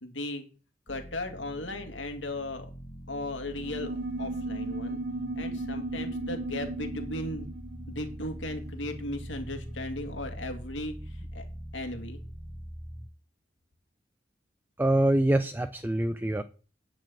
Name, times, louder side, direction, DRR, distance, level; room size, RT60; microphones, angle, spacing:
voice 1, 0.0-0.4 0.9-2.7 3.1-5.0 5.4-7.5 7.9-11.5 11.7-12.2, left 1 dB, 85° left, 6 dB, 2.2 m, -36 dB
sound 1, 0.9-13.1, equal, 35° left, 2.0 m, -43 dB
sound 2, 3.5-9.5, right 2 dB, 60° right, 0.9 m, -36 dB
voice 2, 14.8-16.4, right 1 dB, 10° right, 10 dB, 0.5 m, -25 dB
9.1 x 6.2 x 7.6 m, 0.37 s
head